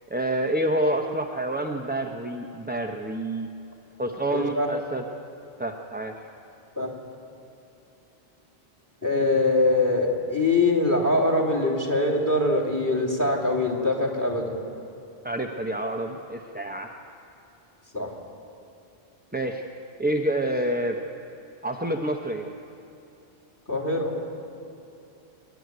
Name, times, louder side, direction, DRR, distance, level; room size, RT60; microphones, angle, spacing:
voice 1, 0.1-3.5 4.0-5.0 5.6-6.1 15.2-16.9 19.3-19.6 20.0-21.0 21.6-22.5, right 1 dB, 10° right, 2 dB, 0.8 m, -28 dB
voice 2, 4.3-4.7 6.8-6.9 9.0-14.6 17.9-18.1 23.7-24.2, left 2 dB, 15° left, 0 dB, 2.9 m, -23 dB
26.5 x 10.5 x 9.5 m, 2.8 s
omnidirectional pair, 1.1 m